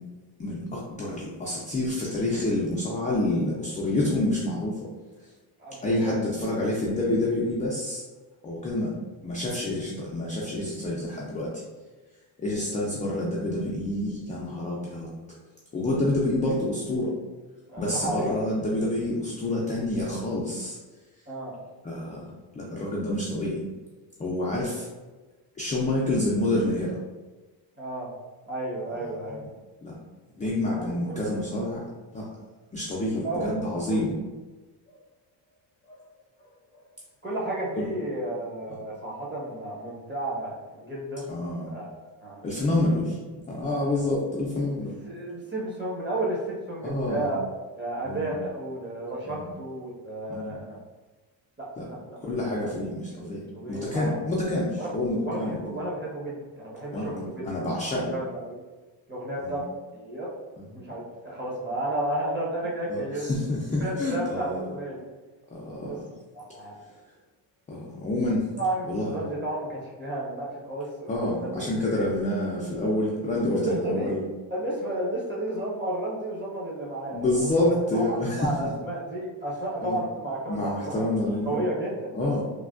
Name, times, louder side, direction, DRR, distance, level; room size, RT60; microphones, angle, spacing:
voice 1, 0.4-4.8 5.8-8.0 8.4-8.9 9.2-11.6 12.4-15.1 15.7-17.1 17.8-20.8 21.8-22.3 22.5-23.6 24.2-24.9 25.6-27.0 29.8-29.9 30.4-31.8 32.1-32.3 32.7-34.1 35.9-36.0 37.8-37.9 41.3-41.7 42.4-43.2 43.5-44.9 46.8-47.3 48.0-48.4 49.3-49.4 50.3-50.6 51.8-51.9 52.2-53.4 53.7-55.6 56.9-58.1 59.4-59.6 62.9-64.6 65.5-66.0 67.7-68.5 68.9-69.2 71.1-74.2 77.1-78.7 79.8-80.0 80.5-81.6 82.1-82.4, left 1 dB, 20° left, -5 dB, 0.3 m, -28 dB
voice 2, 5.6-6.1 17.7-18.9 21.3-21.5 27.8-28.1 28.5-29.4 30.7-31.3 33.1-33.5 33.9-34.1 37.2-41.3 41.6-41.9 42.2-42.4 43.8-44.1 45.1-47.5 47.8-50.8 51.6-52.2 52.6-52.7 53.2-53.3 53.5-54.2 54.8-55.0 55.2-57.5 57.8-58.6 59.1-59.7 59.9-60.3 60.7-63.3 63.8-65.1 65.8-66.0 66.3-66.8 68.6-71.6 71.9-72.1 73.5-74.2 74.5-81.0 81.4-82.3, right 1 dB, 25° right, -5 dB, 1.0 m, -32 dB
3.3 x 2.2 x 2.4 m, 1.3 s
cardioid pair, 110°, 45 cm